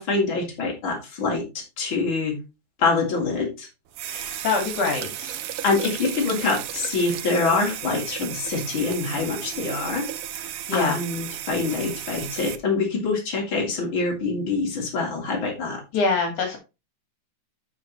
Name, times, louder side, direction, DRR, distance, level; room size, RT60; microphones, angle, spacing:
voice 1, 0.0-2.4 2.8-3.7 4.0-4.4 5.6-15.8, left 4 dB, 40° left, -1 dB, 3.6 m, -25 dB
sound 1, 3.9-12.6, right 11 dB, 80° right, 1.3 m, -34 dB
voice 2, 4.1-5.4 10.7-11.0 15.9-16.6, left 4 dB, 70° left, 2 dB, 3.5 m, -24 dB
13.0 x 5.2 x 3.1 m, 0.26 s
omnidirectional pair, 3.6 m